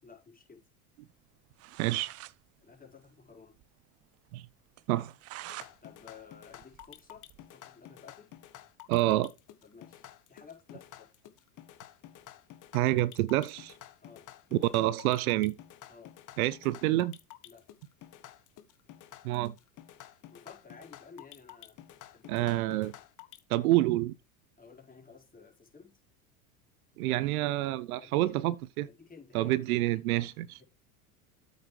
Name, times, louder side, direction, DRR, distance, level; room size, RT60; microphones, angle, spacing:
voice 1, 0.0-0.6 2.6-3.6 5.8-7.2 7.5-8.3 9.6-11.1 14.0-14.3 15.9-16.1 17.4-17.6 20.3-21.8 22.1-22.5 24.6-25.9 27.1-27.2 28.0-28.5 28.9-29.5 29.8-29.9, left 5 dB, 20° left, 4.7 m, -53 dB
sound 1, 1.3-1.4 1.6-2.4 2.7-2.8 3.1-3.2 3.6-3.7 4.1-4.2 4.8-5.7 6.1-7.5, right 15 dB, 35° right, 0.5 m, -47 dB
voice 2, 1.8-2.1 4.3-4.4 4.9-5.1 8.9-9.3 12.7-13.7 14.5-15.6 16.4-17.1 19.2-19.5 22.3-22.9 23.5-24.1 27.0-28.9 29.3-30.6, right 16 dB, 75° right, 0.8 m, -28 dB
sound 2, 5.4-23.4, left 13 dB, 45° left, 1.5 m, -51 dB
8.3 x 6.8 x 4.7 m
hypercardioid pair, 95°, 44 cm